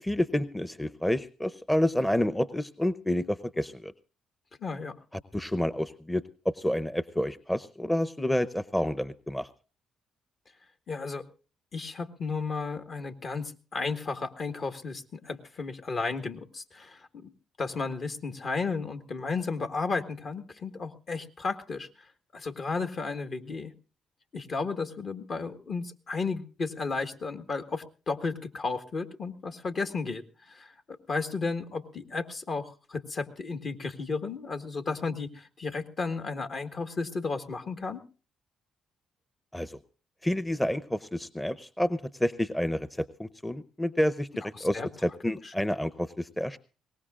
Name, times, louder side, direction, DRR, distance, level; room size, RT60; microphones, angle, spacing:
voice 1, 0.0-3.9 5.3-9.5 39.5-39.8 40.2-44.3 44.6-46.6, left 1 dB, 10° left, 14 dB, 0.7 m, -29 dB
voice 2, 4.6-4.9 10.9-11.2 11.7-17.3 17.6-22.1 22.3-23.7 24.3-38.0 44.5-44.9 45.4-45.5, left 4 dB, 55° left, 8 dB, 1.6 m, -33 dB
22.0 x 18.5 x 2.4 m, 0.36 s
supercardioid pair, 60°, 0 cm